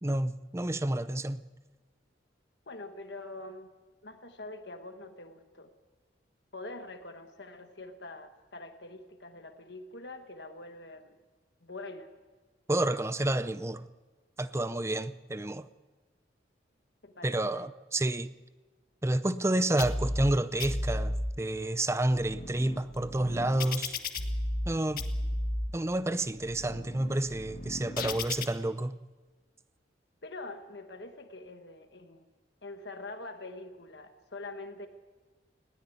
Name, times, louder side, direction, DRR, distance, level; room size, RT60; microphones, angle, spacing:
voice 1, 0.0-1.5 12.7-13.9 14.4-15.7 17.2-18.3 19.0-24.0 24.7-25.1 25.7-29.0, right 1 dB, 15° right, 0.6 m, -30 dB
voice 2, 2.7-3.7 4.0-5.7 6.5-11.2 11.6-12.1 17.0-17.7 30.2-32.2 32.6-34.9, left 2 dB, 65° left, 1.4 m, -44 dB
sound 1, 19.8-20.3 20.6-21.3 21.9-24.7 25.0-25.7 26.3-28.5, left 1 dB, 50° left, 1.6 m, -34 dB
20.0 x 17.0 x 9.5 m
head